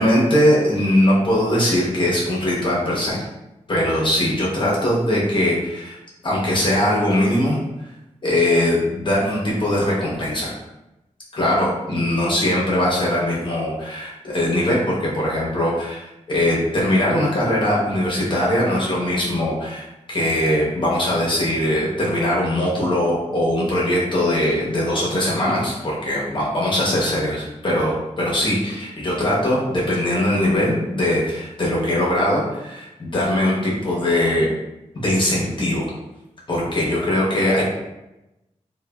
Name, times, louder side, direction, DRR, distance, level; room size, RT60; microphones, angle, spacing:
voice 1, 0.0-3.2 3.7-6.0 6.2-7.6 8.2-10.5 11.3-34.5 34.9-35.9 36.5-37.6, left 1 dB, 40° left, -5 dB, 0.7 m, -21 dB
3.1 x 2.1 x 2.2 m, 0.95 s
wide cardioid pair, 135°, 13 cm